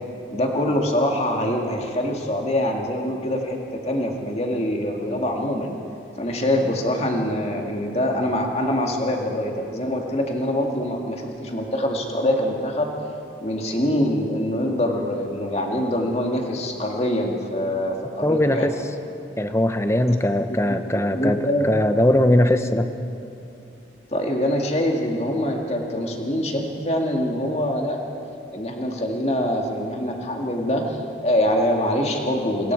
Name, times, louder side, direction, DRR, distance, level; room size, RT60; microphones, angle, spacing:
voice 1, 0.3-5.7 6.2-12.9 13.4-18.7 20.5-20.6 21.1-21.7 24.1-28.0 28.5-31.0 31.2-32.7, left 1 dB, 35° left, 1 dB, 2.2 m, -24 dB
voice 2, 18.2-18.7 19.4-22.9, left 1 dB, 15° left, 8 dB, 0.8 m, -20 dB
26.0 x 22.0 x 4.8 m, 2.7 s
head